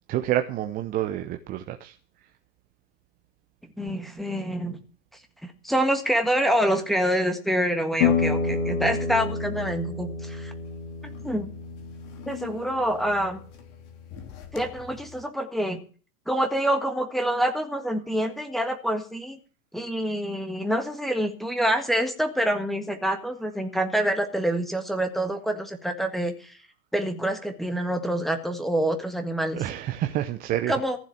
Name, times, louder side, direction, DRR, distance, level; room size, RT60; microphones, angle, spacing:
voice 1, 0.1-1.9 29.6-30.8, right 12 dB, 20° right, 5 dB, 0.7 m, -28 dB
voice 2, 3.8-4.8 5.4-10.5 11.2-11.5 12.3-13.4 14.5-15.8 16.3-19.4 19.7-26.5 26.9-29.6 30.7-31.0, right 1 dB, ahead, 4 dB, 1.6 m, -26 dB
sound 1, 8.0-13.6 14.1-15.0, left 5 dB, 50° left, 3.3 m, -29 dB
15.0 x 7.6 x 7.2 m, 0.40 s
hypercardioid pair, 125°, 46 cm